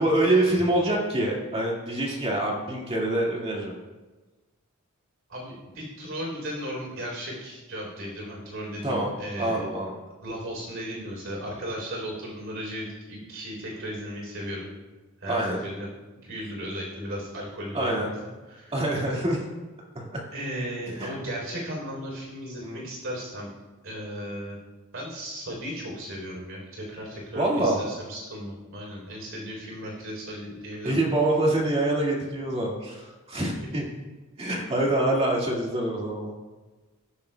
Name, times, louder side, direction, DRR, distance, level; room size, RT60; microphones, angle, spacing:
voice 1, 0.0-3.7 8.8-9.1 9.4-10.0 15.3-15.6 17.7-18.1 18.7-19.4 20.0-20.2 20.9-21.1 22.6-22.9 27.3-27.8 30.8-33.8 34.4-36.3, right 1 dB, 30° right, -3 dB, 2.0 m, -25 dB
voice 2, 5.3-9.7 10.2-14.7 15.2-15.9 16.2-18.1 18.5-18.7 20.3-23.5 23.8-24.6 24.9-31.0 33.4-33.7, equal, 65° right, -2 dB, 3.5 m, -36 dB
20.5 x 7.0 x 2.2 m, 1.2 s
head